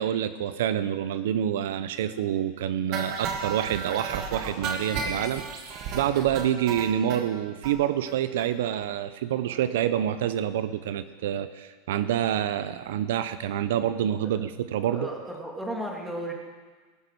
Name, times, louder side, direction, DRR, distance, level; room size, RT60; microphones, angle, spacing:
voice 1, 0.0-15.1, right 10 dB, 80° right, 12 dB, 0.6 m, -27 dB
sound 1, 2.9-7.2 7.6-7.7 8.1-8.2 8.4-8.5 8.8-8.9, right 5 dB, 45° right, 2.0 m, -33 dB
voice 2, 14.8-16.3, right 1 dB, 5° right, -1 dB, 2.3 m, -34 dB
20.5 x 8.0 x 4.6 m, 1.4 s
supercardioid pair, 145°, 0 cm